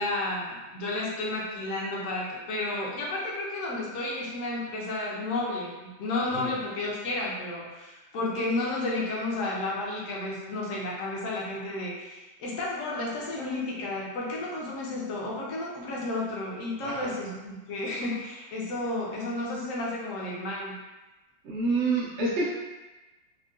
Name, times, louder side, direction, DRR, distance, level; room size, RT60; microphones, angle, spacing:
voice 1, 0.0-20.8, left 2 dB, 65° left, -4 dB, 0.8 m, -32 dB
voice 2, 21.4-22.6, right 3 dB, 75° right, -6 dB, 0.6 m, -28 dB
3.6 x 2.2 x 2.4 m, 1.1 s
omnidirectional pair, 2.0 m